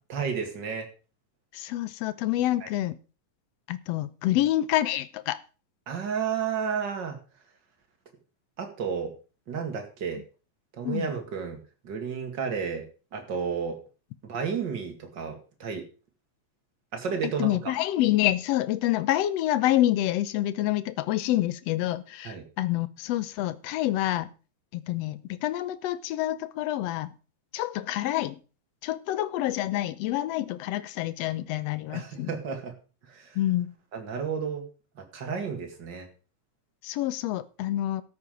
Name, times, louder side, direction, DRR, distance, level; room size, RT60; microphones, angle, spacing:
voice 1, 0.1-0.9 2.6-2.7 5.9-7.2 8.6-9.1 9.5-10.2 10.7-12.8 13.1-13.8 14.2-15.9 16.9-17.7 22.2-22.4 31.9-32.7 33.1-33.4 33.9-34.7 35.0-36.1, right 6 dB, 40° right, 4 dB, 2.5 m, -32 dB
voice 2, 1.5-3.0 3.7-5.4 10.8-11.1 17.4-24.3 24.7-27.1 27.5-28.4 28.8-32.3 33.3-33.7 36.8-38.0, left 14 dB, 70° left, 15 dB, 1.7 m, -27 dB
13.0 x 7.7 x 5.1 m, 0.35 s
omnidirectional pair, 3.4 m